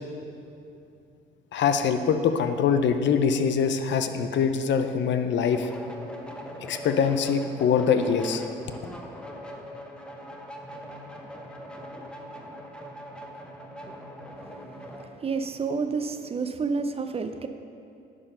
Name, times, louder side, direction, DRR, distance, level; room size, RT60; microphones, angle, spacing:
voice 1, 1.5-5.7 6.7-8.4, left 6 dB, 65° left, 8 dB, 0.6 m, -23 dB
sound 1, 5.4-15.1, equal, 5° left, 0.8 m, -41 dB
voice 2, 14.4-17.5, right 4 dB, 30° right, 8 dB, 0.5 m, -30 dB
11.0 x 3.9 x 5.5 m, 2.6 s
cardioid pair, 90°, 20 cm